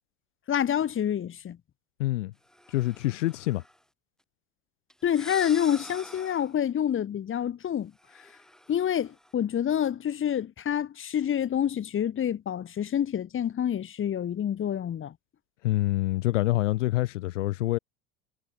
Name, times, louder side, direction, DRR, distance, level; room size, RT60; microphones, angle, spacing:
voice 1, 0.5-1.6 5.0-7.9 8.7-15.1, left 9 dB, 30° left, 2.8 m, -27 dB
voice 2, 2.0-2.3 2.7-3.6 15.6-17.8, left 17 dB, 70° left, 1.2 m, -26 dB
sound 1, 2.5-3.8 4.9-6.6 8.0-9.3, equal, ahead, 5.6 m, -47 dB
hypercardioid pair, 80°, 39 cm